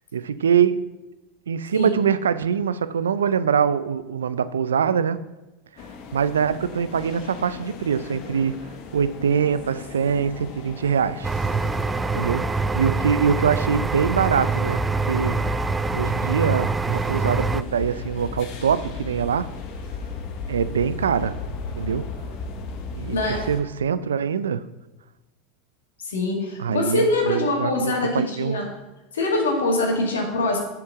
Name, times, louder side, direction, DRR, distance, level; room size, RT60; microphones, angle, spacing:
voice 1, 0.1-0.8 1.5-5.2 6.1-8.6 8.9-11.3 12.1-14.8 15.1-15.4 15.9-19.5 20.5-21.3 21.8-22.1 22.9-24.6 26.6-28.6, right 7 dB, 85° right, 14 dB, 0.4 m, -23 dB
sound 1, 5.8-23.6, left 4 dB, 55° left, 1.0 m, -36 dB
sound 2, 11.2-17.6, right 3 dB, 15° right, 0.3 m, -25 dB
voice 2, 23.1-23.4 26.0-28.7 29.1-30.6, left 2 dB, 85° left, 0 dB, 2.0 m, -23 dB
7.4 x 4.5 x 6.5 m, 1.0 s
hypercardioid pair, 90°, 0 cm